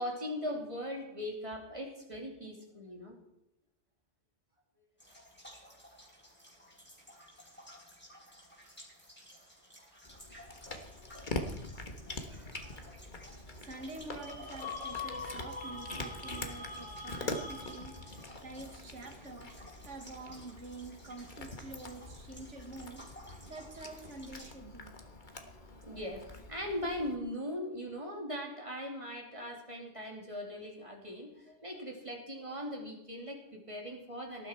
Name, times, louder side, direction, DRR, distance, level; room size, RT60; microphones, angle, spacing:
voice 1, 0.0-3.1 5.1-5.2 9.8-9.9 12.2-13.0 25.5-34.5, equal, 25° right, 2.8 m, -40 dB
sound 1, 5.0-24.5, equal, 10° left, 4.2 m, -55 dB
Cat, 10.0-27.2, left 2 dB, 40° left, 1.6 m, -44 dB
voice 2, 13.6-19.6 19.8-23.1 23.5-24.9, right 2 dB, 70° right, 1.9 m, -47 dB
sound 2, 14.1-18.3, left 3 dB, 90° left, 2.4 m, -43 dB
18.5 x 11.5 x 4.5 m
omnidirectional pair, 1.3 m